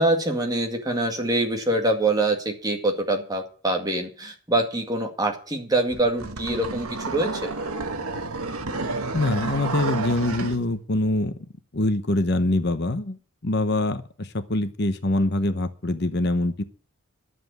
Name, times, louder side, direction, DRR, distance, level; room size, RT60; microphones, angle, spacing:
voice 1, 0.0-7.5, right 2 dB, 15° right, 2 dB, 2.1 m, -24 dB
sound 1, 5.9-10.6, right 3 dB, 80° right, 1.4 m, -30 dB
voice 2, 9.1-11.5 11.7-13.2 13.4-16.6, left 2 dB, 50° left, 10 dB, 0.9 m, -24 dB
11.0 x 7.7 x 9.4 m, 0.42 s
head